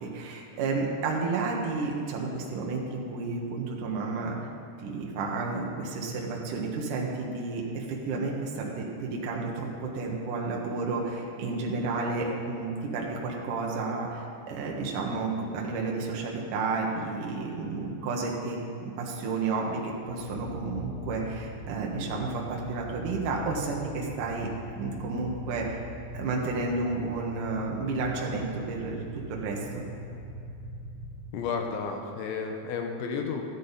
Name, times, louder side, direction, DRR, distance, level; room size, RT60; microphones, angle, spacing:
voice 1, 0.0-4.3 4.8-24.5 24.8-25.8 26.1-29.0 29.3-29.8, right 3 dB, 65° right, -2 dB, 2.1 m, -31 dB
sound 1, 20.1-31.2, equal, 35° left, 2.7 m, -41 dB
voice 2, 31.3-33.5, left 5 dB, 80° left, 3 dB, 3.3 m, -32 dB
14.0 x 10.0 x 4.1 m, 2.8 s
omnidirectional pair, 5.5 m